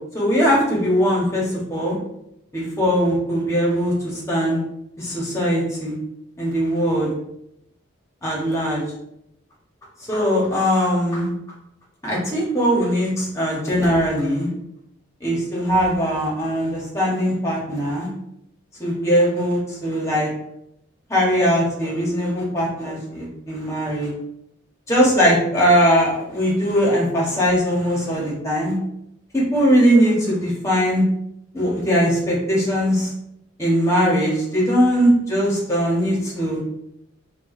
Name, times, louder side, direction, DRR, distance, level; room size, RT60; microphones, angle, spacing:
voice 1, 0.1-2.0 2.5-4.6 5.0-5.9 6.4-7.1 8.2-8.8 10.1-11.3 12.0-14.5 15.2-18.1 18.8-20.3 21.1-24.1 24.9-28.8 29.3-31.0 31.5-33.1 33.6-36.6, equal, 15° left, -4 dB, 1.0 m, -20 dB
4.4 x 2.3 x 2.5 m, 0.78 s
head